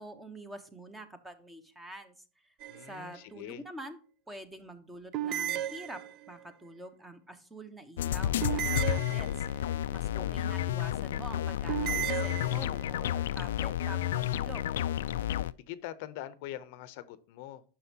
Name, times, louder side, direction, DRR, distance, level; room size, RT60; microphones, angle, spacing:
voice 1, 0.0-4.0 4.3-14.6, right 1 dB, 10° right, 0.8 m, -46 dB
sound 1, 2.6-3.2 5.1-6.4 8.4-9.7 11.7-13.0, right 12 dB, 35° right, 0.4 m, -35 dB
voice 2, 2.7-3.6 12.3-13.2 15.7-17.6, left 13 dB, 55° left, 0.6 m, -44 dB
sound 2, 8.0-15.5, left 11 dB, 90° left, 0.3 m, -31 dB
9.4 x 6.2 x 2.8 m
supercardioid pair, 155°, 0 cm